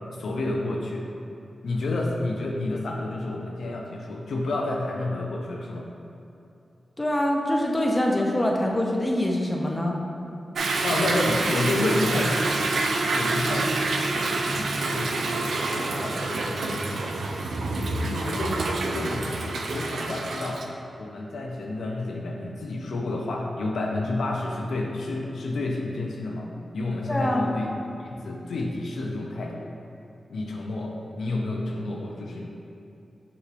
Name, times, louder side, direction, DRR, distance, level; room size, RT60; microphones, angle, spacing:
voice 1, 0.2-1.1 1.6-5.9 10.8-12.6 13.1-17.0 18.1-20.7 21.0-27.7 28.0-29.7 30.3-32.5, left 2 dB, 85° left, -1 dB, 0.5 m, -30 dB
voice 2, 7.0-10.0 27.1-27.5, left 1 dB, 20° left, -1 dB, 0.6 m, -24 dB
Toilet flush / Drip / Trickle dribble, 10.6-20.7, right 2 dB, 80° right, 0.3 m, -27 dB
6.6 x 3.0 x 2.5 m, 2.7 s
cardioid pair, 55°, 0 cm